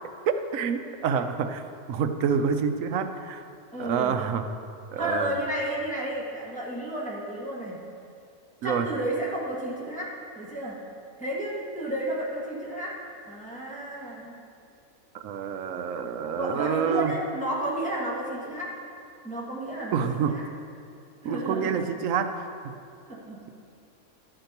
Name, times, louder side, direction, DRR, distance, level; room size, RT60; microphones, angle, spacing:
voice 1, 0.3-1.6 1.9-3.4 3.8-4.5 4.9-5.4 8.6-8.9 15.1-17.1 19.9-20.4 21.2-22.4, right 7 dB, 70° right, 8 dB, 0.9 m, -27 dB
voice 2, 3.7-4.1 5.0-7.8 8.6-10.8 11.2-13.0 13.2-14.4 16.3-18.8 19.2-20.4 21.2-21.8 23.1-23.4, right 1 dB, 5° left, -6 dB, 1.5 m, -32 dB
12.5 x 9.0 x 2.9 m, 2.4 s
omnidirectional pair, 1.5 m